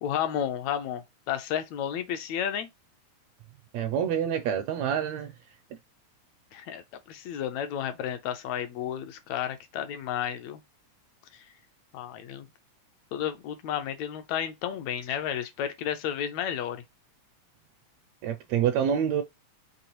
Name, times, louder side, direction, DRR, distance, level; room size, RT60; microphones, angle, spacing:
voice 1, 0.0-2.7 6.5-6.8 7.1-10.6 11.3-11.4 11.9-12.5 13.1-16.8, left 9 dB, 75° left, 2.0 m, -32 dB
voice 2, 3.7-5.3 18.2-19.2, right 8 dB, 80° right, 1.6 m, -27 dB
5.4 x 3.0 x 2.9 m
omnidirectional pair, 3.4 m